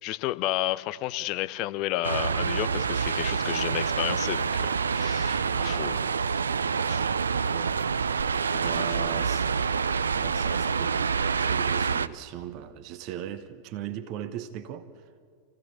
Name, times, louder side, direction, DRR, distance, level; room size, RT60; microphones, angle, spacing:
voice 1, 0.0-6.0 6.9-7.0 8.9-9.2, left 16 dB, 40° left, 0.8 m, -32 dB
sound 1, 2.0-12.1, right 6 dB, 70° right, 0.5 m, -27 dB
voice 2, 5.5-6.2 6.7-7.8 8.5-9.5 10.1-15.1, right 10 dB, 40° right, 1.0 m, -39 dB
28.0 x 16.0 x 8.5 m
figure-of-eight pair, 90°, 0 cm